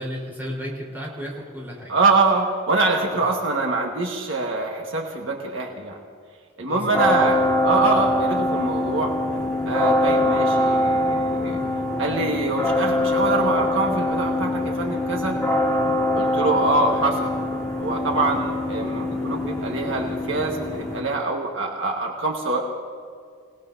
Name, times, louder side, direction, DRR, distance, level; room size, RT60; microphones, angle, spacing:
voice 1, 0.0-2.0 6.7-7.4, equal, 10° right, -5 dB, 4.0 m, -34 dB
voice 2, 1.9-6.0 6.6-9.1 9.7-11.6 12.0-15.4 16.1-17.4 17.8-22.7, right 3 dB, 70° right, 1 dB, 1.5 m, -24 dB
sound 1, 6.9-21.0, left 1 dB, 5° left, 3.2 m, -23 dB
27.0 x 18.0 x 2.7 m, 2.1 s
head